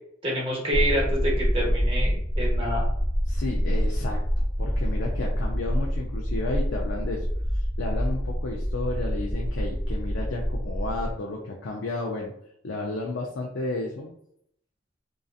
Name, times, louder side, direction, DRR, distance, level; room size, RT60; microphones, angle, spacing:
voice 1, 0.2-2.9, equal, 30° right, -3 dB, 0.9 m, -27 dB
sound 1, 0.7-11.1, equal, 10° left, 0.6 m, -26 dB
voice 2, 3.3-4.2 4.6-7.3 7.5-12.3 12.6-14.1, left 2 dB, 80° left, -1 dB, 0.4 m, -32 dB
2.6 x 2.3 x 2.3 m, 0.72 s
head